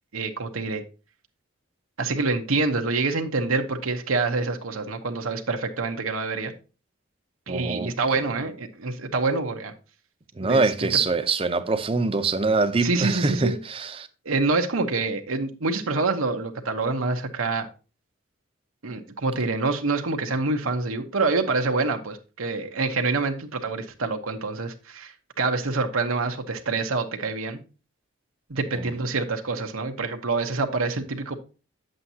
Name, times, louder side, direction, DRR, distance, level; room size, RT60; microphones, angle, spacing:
voice 1, 0.1-0.8 2.0-6.5 7.5-9.7 10.4-10.9 12.8-13.6 14.2-17.7 18.8-27.6 28.5-31.4, right 3 dB, 90° right, 1.0 m, -26 dB
voice 2, 7.5-7.9 10.4-14.1 28.7-28.9, right 3 dB, 25° right, 0.6 m, -24 dB
9.0 x 7.8 x 2.8 m
head